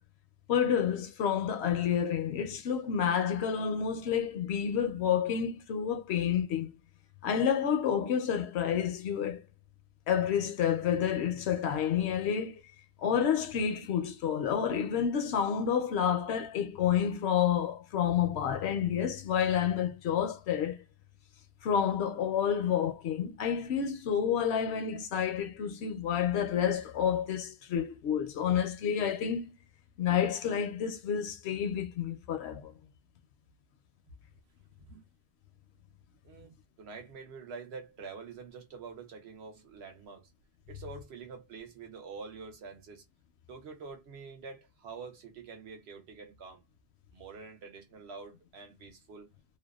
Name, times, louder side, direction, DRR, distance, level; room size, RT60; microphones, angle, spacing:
voice 1, 0.5-6.7 7.2-9.4 10.1-12.6 13.0-20.8 21.6-29.5 30.0-32.7, left 8 dB, 75° left, 0.8 m, -29 dB
voice 2, 36.2-40.3 40.7-43.0 43.5-46.6 47.1-49.3, right 5 dB, 75° right, 0.9 m, -46 dB
2.6 x 2.2 x 2.3 m
omnidirectional pair, 1.1 m